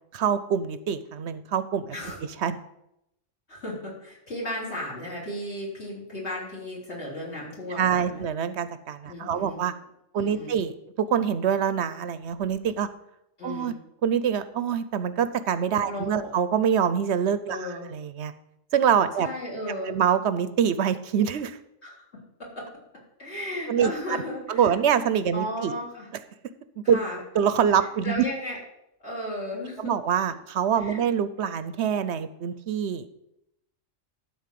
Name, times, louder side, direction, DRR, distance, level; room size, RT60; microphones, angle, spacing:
voice 1, 0.1-2.0 2.4-2.6 7.8-9.7 10.1-12.9 13.4-13.7 14.0-18.3 18.7-19.3 19.9-21.6 23.7-23.9 24.5-25.7 26.8-27.0 27.3-28.2 29.8-33.1, right 8 dB, 65° right, 13 dB, 0.9 m, -25 dB
voice 2, 3.5-8.3 9.1-9.6 10.2-10.6 13.4-13.7 15.9-16.3 17.5-17.9 19.2-20.0 21.8-22.7 23.2-24.8 25.3-26.1 26.8-27.2 28.0-28.6 29.0-29.9 30.8-31.0, left 1 dB, 60° left, -4 dB, 3.9 m, -35 dB
12.5 x 4.3 x 7.5 m, 0.82 s
omnidirectional pair, 1.3 m